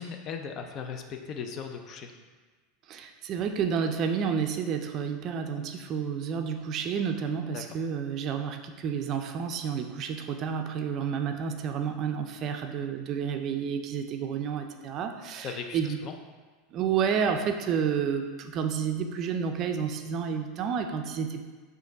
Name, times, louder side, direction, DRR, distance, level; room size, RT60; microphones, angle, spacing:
voice 1, 0.0-2.1 7.5-7.8 15.4-16.2, left 6 dB, 45° left, 5 dB, 0.5 m, -38 dB
voice 2, 2.9-15.5 15.7-16.0 16.7-21.4, right 7 dB, 45° right, 5 dB, 0.4 m, -30 dB
5.1 x 2.6 x 3.9 m, 1.4 s
supercardioid pair, 120°, 0 cm